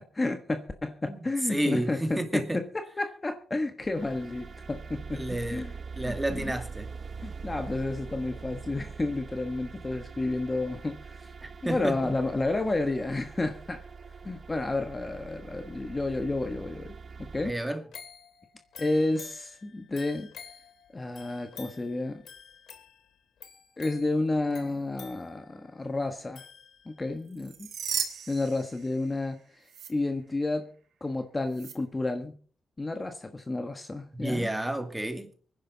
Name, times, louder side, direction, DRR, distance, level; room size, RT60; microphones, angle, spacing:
voice 1, 0.1-5.2 5.5-5.8 6.0-6.5 7.2-11.3 11.6-13.8 14.2-17.5 18.8-20.3 20.9-22.2 23.8-26.4 26.8-27.7 28.3-32.3 32.8-34.5, left 2 dB, 20° left, 1.3 m, -31 dB
voice 2, 1.5-2.6 5.1-5.7 6.0-6.9 11.4-12.0 17.4-17.8 34.1-35.3, right 1 dB, 10° right, 2.3 m, -31 dB
sound 1, 3.8-17.5, right 5 dB, 40° right, 0.9 m, -43 dB
sound 2, 17.9-27.2 27.6-27.7, left 6 dB, 70° left, 2.7 m, -50 dB
sound 3, 27.3-29.3 29.7-29.9 31.5-31.7, right 7 dB, 80° right, 3.0 m, -36 dB
25.0 x 10.5 x 4.0 m
cardioid pair, 125°, 0 cm